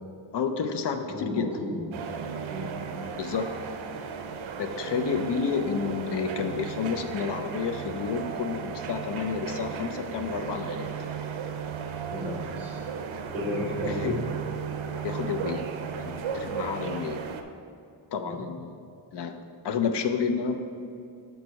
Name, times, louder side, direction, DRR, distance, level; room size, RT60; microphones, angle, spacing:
voice 1, 0.3-1.5 3.1-3.5 4.6-10.9 13.8-14.2 14.9-17.2 18.1-18.9 19.1-19.4 19.6-20.6, left 6 dB, 60° left, 6 dB, 0.6 m, -30 dB
voice 2, 1.1-1.9 2.5-2.7 12.1-12.8 13.3-14.2 18.2-18.5, left 1 dB, 5° right, -5 dB, 1.4 m, -33 dB
sound 1, 1.9-17.4, right 6 dB, 85° right, 0.6 m, -35 dB
6.5 x 4.7 x 5.3 m, 2.6 s
wide cardioid pair, 155°, 47 cm